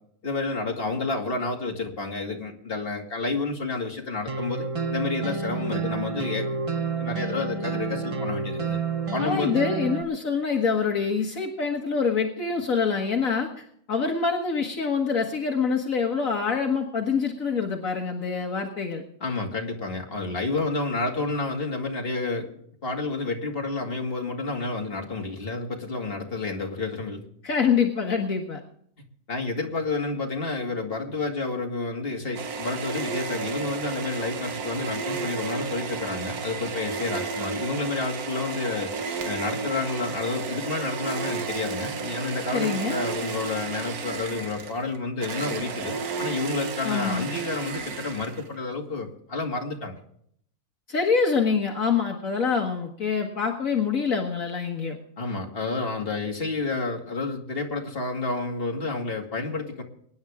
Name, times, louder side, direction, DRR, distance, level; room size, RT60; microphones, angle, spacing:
voice 1, 0.2-6.6 7.0-8.8 9.1-9.5 19.2-22.5 22.8-27.2 29.3-38.9 39.2-49.9 55.2-59.8, left 3 dB, 40° left, 1 dB, 2.6 m, -30 dB
sound 1, 4.3-10.0, right 4 dB, 30° right, 0.8 m, -29 dB
voice 2, 9.2-13.5 13.9-19.0 27.4-28.6 42.5-43.0 46.8-47.3 50.9-55.0, left 5 dB, 65° left, 2 dB, 1.9 m, -25 dB
sound 2, 32.3-48.6, right 5 dB, 90° right, 1.7 m, -33 dB
24.0 x 10.5 x 3.6 m, 0.66 s
omnidirectional pair, 1.5 m